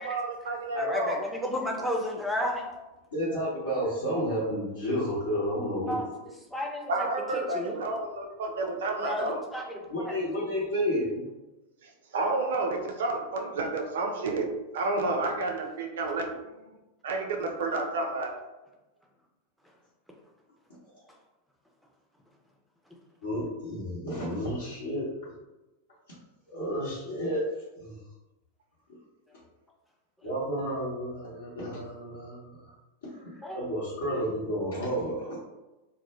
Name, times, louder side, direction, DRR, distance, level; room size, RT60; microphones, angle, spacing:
voice 1, 0.0-1.2 6.9-9.4 11.8-14.5 14.7-16.3 16.7-16.8 17.0-18.3, right 2 dB, 60° right, 3 dB, 0.4 m, -30 dB
voice 2, 0.7-2.7 5.9-6.1 6.5-7.1 7.3-7.8 9.0-10.2 33.4-33.6, left 1 dB, ahead, -1 dB, 0.4 m, -32 dB
voice 3, 3.1-6.1 9.9-11.3 23.2-25.1 26.5-27.4 27.8-28.0 30.2-32.7 33.1-35.4, equal, 70° left, -10 dB, 0.8 m, -31 dB
2.1 x 2.0 x 2.9 m, 1.0 s
figure-of-eight pair, 90°, 0 cm